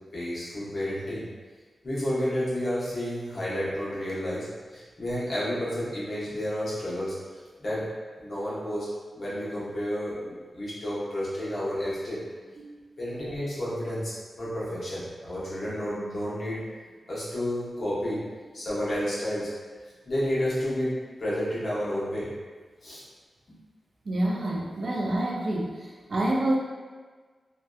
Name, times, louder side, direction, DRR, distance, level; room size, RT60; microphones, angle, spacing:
voice 1, 0.1-1.3 1.8-7.1 7.6-7.9 8.2-8.9 9.1-12.2 13.0-16.6 17.1-18.2 18.5-19.5 20.1-20.9 21.2-22.3 22.8-23.0 23.5-23.6, equal, 45° left, -9 dB, 0.8 m, -31 dB
voice 2, 12.6-12.9 24.1-26.6, right 1 dB, 55° right, -2 dB, 0.3 m, -28 dB
2.5 x 2.2 x 2.2 m, 1.5 s
wide cardioid pair, 135°, 0 cm